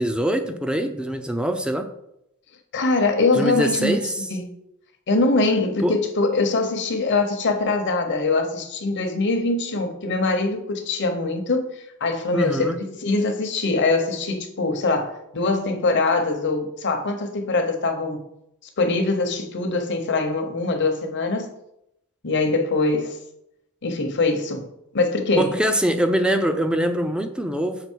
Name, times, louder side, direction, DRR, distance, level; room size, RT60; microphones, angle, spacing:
voice 1, 0.0-1.9 3.3-4.3 5.8-6.0 12.3-12.8 25.4-27.8, equal, 5° right, 7 dB, 0.5 m, -23 dB
voice 2, 2.7-4.5 5.1-11.7 12.0-18.2 18.8-21.5 22.2-23.2 23.8-25.5, left 3 dB, 55° left, 5 dB, 0.9 m, -23 dB
6.8 x 4.0 x 4.5 m, 0.81 s
head